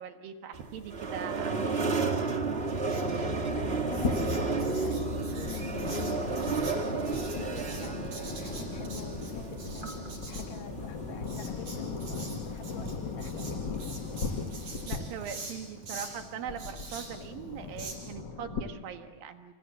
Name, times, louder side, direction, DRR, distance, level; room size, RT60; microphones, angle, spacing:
voice 1, 0.0-2.1 14.9-19.5, right 8 dB, 75° right, 6 dB, 3.2 m, -41 dB
sound 1, 0.5-15.4, right 3 dB, 35° right, 1.0 m, -33 dB
Writing, 2.7-17.9, right 3 dB, 55° right, 5.9 m, -46 dB
sound 2, 3.4-18.6, left 4 dB, 45° left, 1.6 m, -39 dB
voice 2, 3.5-13.9, left 7 dB, 65° left, 5 dB, 3.1 m, -45 dB
27.5 x 27.5 x 7.5 m, 1.3 s
omnidirectional pair, 4.2 m